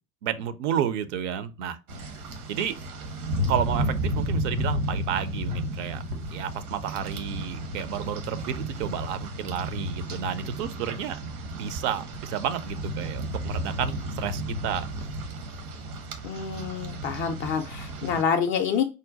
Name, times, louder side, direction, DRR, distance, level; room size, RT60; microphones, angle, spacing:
voice 1, 0.2-1.8 2.5-2.8 3.5-6.0 6.3-11.2 11.6-14.9, right 9 dB, 50° right, 0.6 m, -31 dB
Rain, 1.9-18.2, equal, 70° right, 1.0 m, -33 dB
voice 2, 16.2-18.8, left 6 dB, 30° left, 0.4 m, -27 dB
5.1 x 2.2 x 3.8 m
figure-of-eight pair, 75°, 46 cm